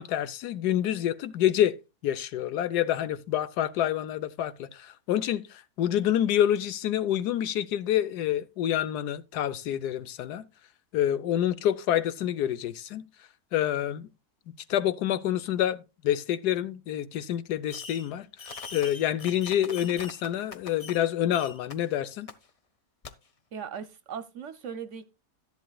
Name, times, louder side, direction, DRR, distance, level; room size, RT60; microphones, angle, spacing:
voice 1, 0.0-1.8 2.0-5.4 5.8-10.4 10.9-13.0 13.5-14.1 14.7-18.3 18.7-22.3, left 11 dB, 85° left, 1.3 m, -27 dB
Fireworks, 17.7-18.1 18.4-21.0 21.3-21.7 22.3-22.4 23.0-23.1, left 4 dB, 45° left, 0.4 m, -42 dB
voice 2, 23.5-25.1, right 7 dB, 60° right, 0.9 m, -38 dB
12.5 x 11.0 x 2.3 m
omnidirectional pair, 1.7 m